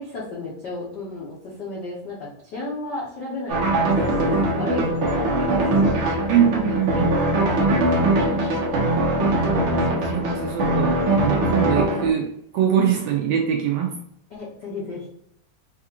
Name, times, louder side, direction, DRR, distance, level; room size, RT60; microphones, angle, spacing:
voice 1, 0.0-3.6 4.6-6.2 6.7-7.0 7.4-8.0 14.3-15.1, left 2 dB, 85° left, -6 dB, 0.9 m, -33 dB
sound 1, 3.5-12.1, right 1 dB, 65° right, 1.2 m, -21 dB
voice 2, 6.3-7.2 10.0-14.0, right 9 dB, 80° right, 1 dB, 1.5 m, -23 dB
5.5 x 2.4 x 2.8 m, 0.73 s
omnidirectional pair, 3.3 m